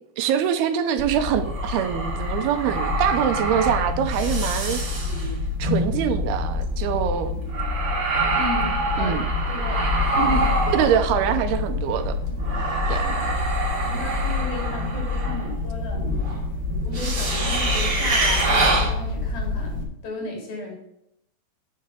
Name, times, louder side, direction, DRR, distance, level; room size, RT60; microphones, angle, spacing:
voice 1, 0.2-4.8 5.6-7.4 9.0-9.2 10.7-12.1 12.9-13.0, right 9 dB, 85° right, 9 dB, 2.8 m, -24 dB
sound 1, 1.0-19.8, equal, 30° right, 2.6 m, -25 dB
voice 2, 8.3-9.2 9.5-9.9 10.2-10.5 12.9-13.3 13.8-16.0 16.8-20.8, left 2 dB, 65° left, -1 dB, 5.4 m, -33 dB
10.5 x 7.6 x 5.2 m, 0.78 s
omnidirectional pair, 4.6 m